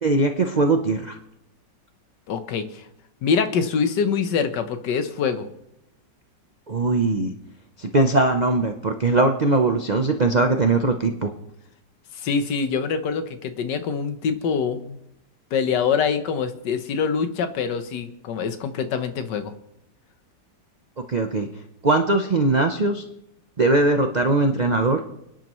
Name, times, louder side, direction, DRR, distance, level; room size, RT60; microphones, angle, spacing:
voice 1, 0.0-1.2 6.7-7.3 7.8-11.3 21.1-21.5 21.8-23.0 23.6-25.0, right 2 dB, 70° right, 5 dB, 0.4 m, -20 dB
voice 2, 2.3-2.8 3.2-5.5 12.1-15.0 15.5-19.5, left 6 dB, 70° left, 10 dB, 1.5 m, -24 dB
29.0 x 10.0 x 3.1 m, 0.85 s
omnidirectional pair, 2.0 m